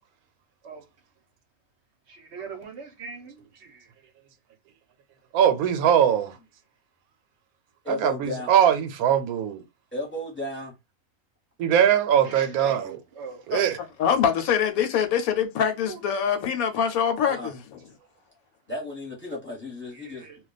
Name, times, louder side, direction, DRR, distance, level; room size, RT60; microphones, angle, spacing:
voice 1, 2.1-3.9 12.2-13.4 15.9-16.0 19.9-20.4, right 5 dB, 60° right, 0.8 m, -41 dB
voice 2, 5.3-6.4 7.9-9.6 11.6-13.0 13.5-13.8, right 9 dB, 85° right, 1.1 m, -21 dB
voice 3, 7.8-8.5 9.9-10.7 17.2-17.5 18.7-20.3, left 1 dB, 10° left, 0.9 m, -34 dB
voice 4, 14.0-17.6, left 8 dB, 80° left, 1.1 m, -24 dB
2.4 x 2.2 x 3.9 m
omnidirectional pair, 1.5 m